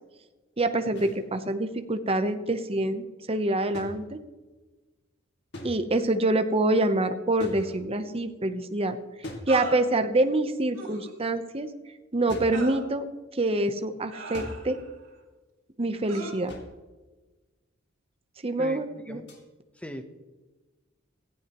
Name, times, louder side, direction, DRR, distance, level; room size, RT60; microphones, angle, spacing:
voice 1, 0.6-4.2 5.6-9.0 9.5-11.7 12.1-13.1 13.3-14.8 15.8-16.5 18.4-19.2, right 2 dB, 30° right, 8 dB, 0.8 m, -26 dB
sound 1, 1.0-1.2 3.7-4.6 5.5-6.1 7.4-8.2 9.2-10.1 12.3-12.7 14.3-14.9 16.5-16.9 19.3-19.5, equal, 55° left, 2.2 m, -42 dB
sound 2, 7.6-7.7 9.5-9.8 10.7-11.1 12.5-12.8 14.1-14.9 16.1-16.3, right 3 dB, 70° right, 4.0 m, -38 dB
voice 2, 18.6-19.3 19.7-20.0, equal, 5° left, 7 dB, 0.9 m, -40 dB
17.0 x 14.5 x 3.0 m, 1.2 s
head